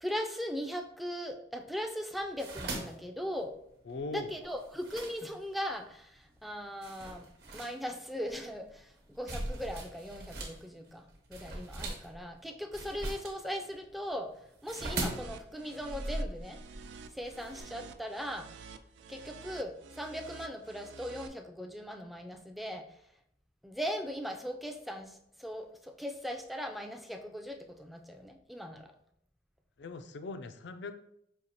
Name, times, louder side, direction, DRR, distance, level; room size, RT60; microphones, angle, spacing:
voice 1, 0.0-3.6 4.1-7.3 7.5-16.6 17.1-18.5 19.1-23.0 23.6-28.9, equal, ahead, 3 dB, 0.3 m, -39 dB
sound 1, 2.1-5.7 6.3-6.4 6.8-10.6 10.9-17.6, right 1 dB, 60° right, 1.0 m, -40 dB
voice 2, 3.9-4.3 29.8-30.9, left 3 dB, 80° left, 9 dB, 0.4 m, -40 dB
sound 2, 14.7-21.3, right 5 dB, 80° right, 0.3 m, -50 dB
5.3 x 2.8 x 2.8 m, 0.74 s
head